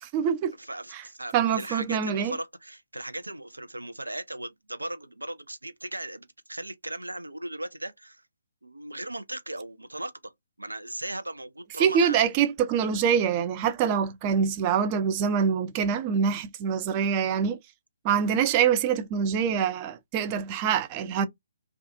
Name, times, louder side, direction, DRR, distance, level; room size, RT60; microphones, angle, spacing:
voice 1, 0.0-0.5 0.9-1.0 1.3-2.4 11.8-17.6 18.0-21.3, right 7 dB, 25° right, 0.4 m, -25 dB
voice 2, 0.6-8.2 8.6-10.3 10.6-12.2, right 1 dB, 85° right, 0.5 m, -37 dB
2.4 x 2.3 x 2.6 m
figure-of-eight pair, 135°, 0 cm